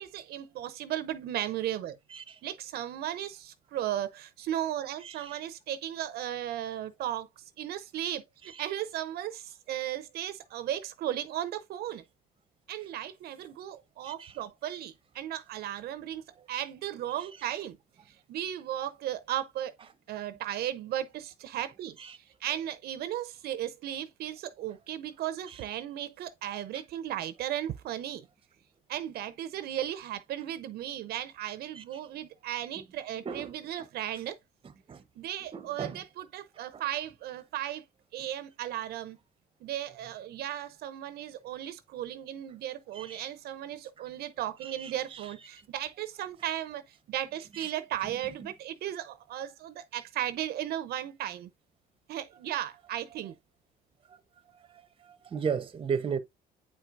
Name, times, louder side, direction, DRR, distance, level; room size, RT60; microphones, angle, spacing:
voice 1, 0.0-2.0 2.4-8.2 8.6-12.0 12.7-17.8 18.1-19.7 20.1-28.3 28.9-34.4 35.2-37.8 38.1-39.2 39.6-51.5 52.1-53.3, right 12 dB, 70° right, 0.6 m, -36 dB
voice 2, 5.0-5.4 8.5-8.7 14.0-14.3 22.0-22.2 26.7-26.8 31.7-31.8 33.2-33.5 34.9-35.0 35.5-36.0 36.7-36.8 42.9-43.2 44.6-45.2 45.5-45.6 47.6-47.7 55.0-56.2, right 6 dB, 30° right, 0.8 m, -35 dB
8.9 x 4.5 x 2.5 m
cardioid pair, 110°, 17 cm